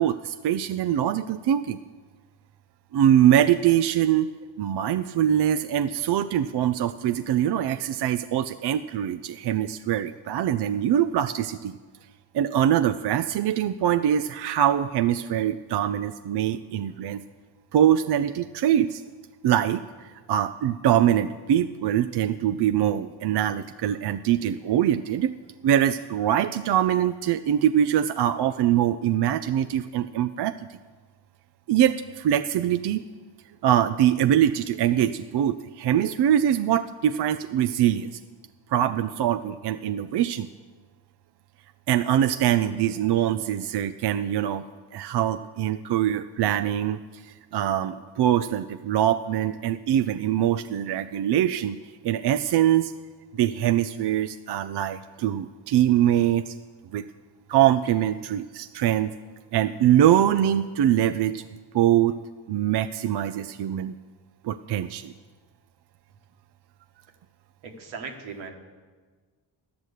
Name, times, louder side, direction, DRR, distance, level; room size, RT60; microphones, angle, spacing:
voice 1, 0.0-1.8 2.9-4.3 4.6-11.7 12.3-17.2 17.7-19.0 19.4-25.3 25.6-30.8 31.7-33.1 33.6-38.2 38.7-40.5 41.9-44.6 44.9-51.8 52.0-52.9 53.3-56.5 56.9-57.0 57.5-59.1 59.5-61.5 61.7-62.2 62.5-63.9 64.4-65.1, right 11 dB, 60° right, 9 dB, 0.5 m, -23 dB
voice 2, 67.6-68.5, right 5 dB, 85° right, 3 dB, 1.6 m, -38 dB
12.5 x 6.2 x 8.2 m, 1.4 s
cardioid pair, 60°, 47 cm